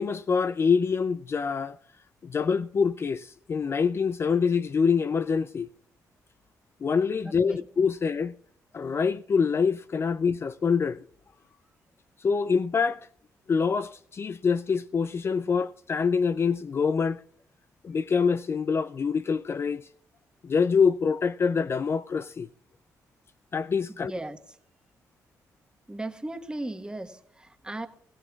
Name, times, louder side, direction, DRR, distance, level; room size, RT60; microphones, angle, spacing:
voice 1, 0.0-1.8 2.2-5.7 6.8-8.3 8.7-11.0 12.2-13.1 13.5-17.2 17.8-19.9 20.4-22.5 23.5-24.1, left 5 dB, 40° left, 0.4 m, -25 dB
voice 2, 7.2-7.7 23.9-24.6 25.9-27.9, right 2 dB, 15° right, 1.3 m, -37 dB
21.0 x 16.0 x 2.4 m
cardioid pair, 80°, 6 cm